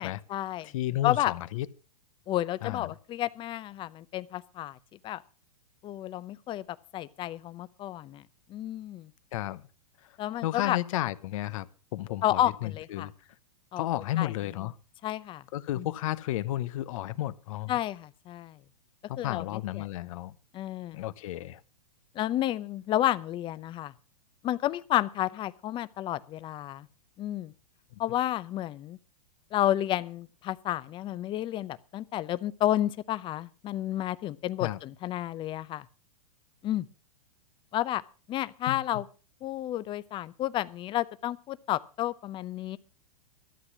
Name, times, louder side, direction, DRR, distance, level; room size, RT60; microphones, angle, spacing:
voice 1, 0.0-0.7 1.0-1.3 2.3-4.8 5.0-5.2 5.8-6.6 6.9-8.2 8.5-9.1 10.2-10.8 12.2-13.1 13.7-13.8 14.2-14.3 15.0-15.4 15.8-15.9 17.7-18.6 19.2-19.9 20.5-21.0 22.1-23.9 24.4-26.9 27.2-27.5 28.0-29.0 29.5-35.9 36.6-36.9 37.7-38.0 38.3-39.0 39.4-42.8, left 13 dB, 25° left, 0.7 m, -31 dB
voice 2, 0.6-1.7 2.6-2.9 9.3-9.6 10.4-11.7 11.9-13.1 13.8-14.8 15.5-17.7 19.1-20.3 20.9-21.6 34.6-34.8 38.7-39.0, left 14 dB, 60° left, 0.9 m, -32 dB
13.0 x 8.1 x 7.2 m
hypercardioid pair, 125°, 19 cm